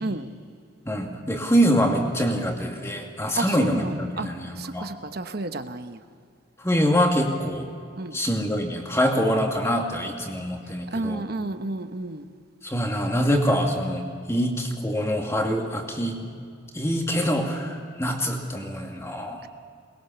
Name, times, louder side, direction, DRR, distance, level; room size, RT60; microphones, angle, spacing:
voice 1, 0.9-4.9 6.6-7.7 8.1-11.3 12.6-16.2 16.7-19.4, equal, 15° left, 2 dB, 2.4 m, -25 dB
voice 2, 3.3-4.3 4.6-6.0 8.0-8.2 10.9-12.3, right 2 dB, 50° right, 8 dB, 1.1 m, -31 dB
22.0 x 21.5 x 7.0 m, 2.3 s
head